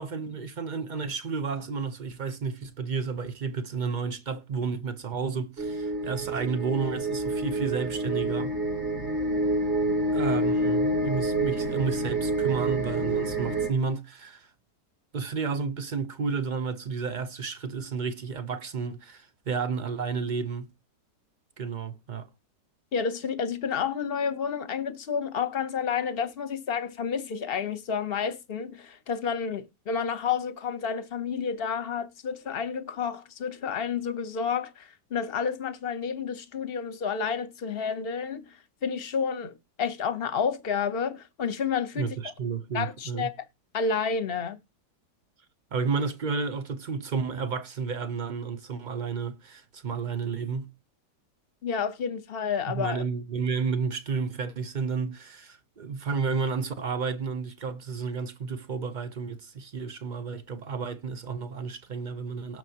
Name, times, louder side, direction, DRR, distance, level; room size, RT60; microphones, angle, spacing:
voice 1, 0.0-8.6 10.1-14.5 15.1-20.7 21.6-22.3 41.9-43.3 45.7-50.7 52.7-62.6, right 5 dB, 75° right, 0.4 m, -31 dB
sound 1, 5.6-13.7, right 2 dB, 50° right, 2.2 m, -28 dB
voice 2, 22.9-42.2 42.7-43.3 43.7-44.6 51.6-53.0, left 6 dB, 45° left, 0.8 m, -30 dB
18.0 x 6.1 x 2.8 m
omnidirectional pair, 1.9 m